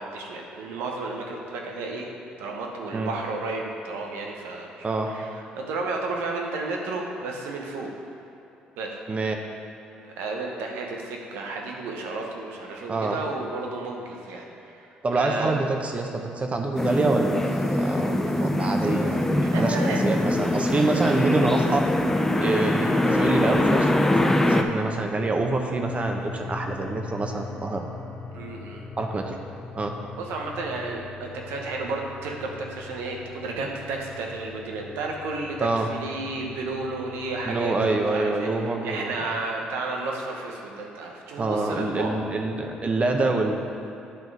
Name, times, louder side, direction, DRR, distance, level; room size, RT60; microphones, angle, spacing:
voice 1, 0.0-2.1 2.4-7.9 8.8-8.9 10.0-15.6 19.5-20.0 22.3-22.5 28.3-28.8 30.2-38.5 38.8-42.1, right 3 dB, 80° right, 0 dB, 1.0 m, -32 dB
voice 2, 4.8-5.3 9.1-9.4 12.9-13.2 15.0-21.8 22.4-23.9 24.2-27.8 29.0-29.4 29.7-29.9 35.6-35.9 37.5-39.3 41.4-43.5, right 3 dB, 35° right, 3 dB, 1.0 m, -26 dB
sound 1, 16.8-24.6, left 1 dB, 10° left, 0.6 m, -23 dB
sound 2, 25.9-38.2, left 4 dB, 50° left, 0.8 m, -41 dB
10.5 x 3.9 x 4.8 m, 2.8 s
hypercardioid pair, 55°, 4 cm